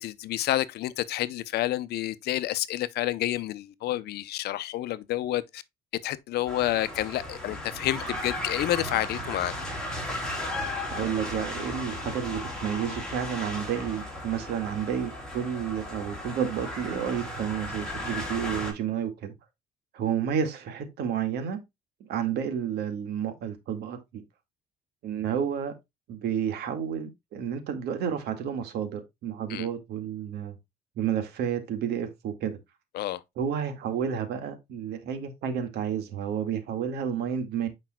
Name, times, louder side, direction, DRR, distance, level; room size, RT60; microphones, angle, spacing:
voice 1, 0.0-5.6 6.0-9.5 29.5-29.7 32.9-33.2, left 14 dB, 75° left, 0.7 m, -29 dB
sound 1, 6.5-18.7, left 1 dB, 5° left, 3.8 m, -35 dB
voice 2, 10.9-19.3 19.9-21.6 22.1-24.2 25.0-25.7 26.1-30.6 31.0-32.6 33.4-37.7, right 8 dB, 75° right, 1.9 m, -31 dB
9.0 x 5.3 x 2.3 m
cardioid pair, 110°, 17 cm